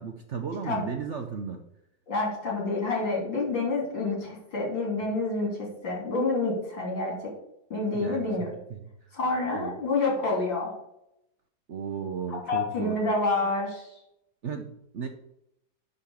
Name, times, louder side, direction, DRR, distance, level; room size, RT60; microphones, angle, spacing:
voice 1, 0.0-1.6 7.9-9.1 9.5-9.8 11.7-13.0 14.4-15.1, right 6 dB, 55° right, 5 dB, 0.8 m, -35 dB
voice 2, 2.1-7.3 7.7-8.5 9.1-10.7 12.5-14.0, left 3 dB, 80° left, -2 dB, 4.1 m, -28 dB
10.5 x 4.2 x 7.0 m, 0.81 s
omnidirectional pair, 2.0 m